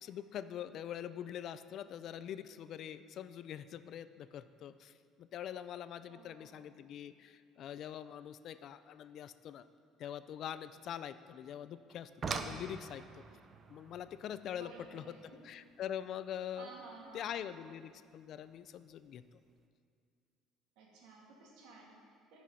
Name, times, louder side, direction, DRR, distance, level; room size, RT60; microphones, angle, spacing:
voice 1, 0.0-9.7 10.0-13.2 13.7-15.2 15.4-16.7 17.1-19.2, left 10 dB, 45° left, 13 dB, 0.4 m, -44 dB
voice 2, 6.0-6.6 14.5-15.5 16.6-17.5 20.8-22.4, right 3 dB, 75° right, -2 dB, 2.5 m, -54 dB
sound 1, 11.9-17.0 18.3-18.4 19.0-19.3 19.6-19.7, right 5 dB, 30° right, 0.6 m, -45 dB
14.5 x 6.1 x 5.6 m, 2.3 s
cardioid pair, 160°, 0 cm